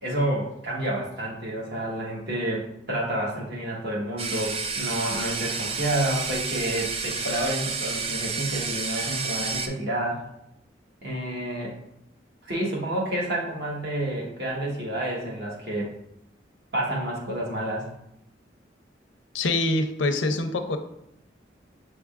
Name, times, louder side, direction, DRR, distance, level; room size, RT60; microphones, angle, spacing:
voice 1, 0.0-10.2 11.0-11.7 12.4-15.9 16.7-17.9, right 1 dB, 60° right, -3 dB, 1.2 m, -29 dB
sound 1, 4.2-9.7, right 4 dB, 30° right, 0.3 m, -30 dB
voice 2, 19.3-20.8, left 2 dB, 85° left, 6 dB, 0.5 m, -25 dB
6.4 x 3.5 x 2.4 m, 0.80 s
head